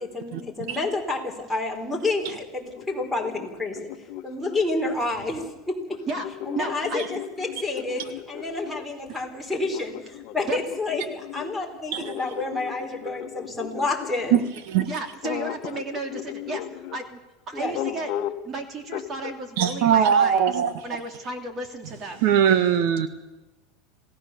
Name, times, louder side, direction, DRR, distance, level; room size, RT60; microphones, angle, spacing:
voice 1, 0.0-3.9 4.2-5.7 6.5-14.4 17.5-17.7, left 2 dB, ahead, -2 dB, 4.5 m, -29 dB
sound 1, 2.7-5.1 5.9-8.9 9.7-14.5 15.2-17.0 17.7-18.5 18.9-19.4, left 12 dB, 50° left, 1.4 m, -36 dB
voice 2, 6.5-7.0 10.4-10.6 14.8-17.2 17.5-18.1 18.4-20.5 20.8-22.2, right 3 dB, 30° right, 6 dB, 2.9 m, -33 dB
voice 3, 19.6-20.8 22.2-23.1, right 8 dB, 70° right, 10 dB, 1.7 m, -20 dB
27.5 x 18.0 x 7.1 m, 1.1 s
supercardioid pair, 145°, 0 cm